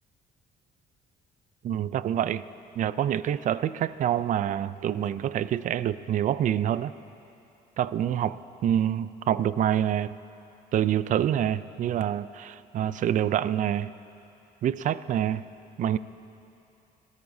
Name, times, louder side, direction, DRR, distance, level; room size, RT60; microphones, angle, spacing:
voice 1, 1.6-2.4 2.8-6.9 7.8-10.2 10.7-13.9 14.6-15.4 15.8-16.0, right 10 dB, 50° right, 16 dB, 0.4 m, -26 dB
26.5 x 14.0 x 2.7 m, 2.9 s
cardioid pair, 110°, 17 cm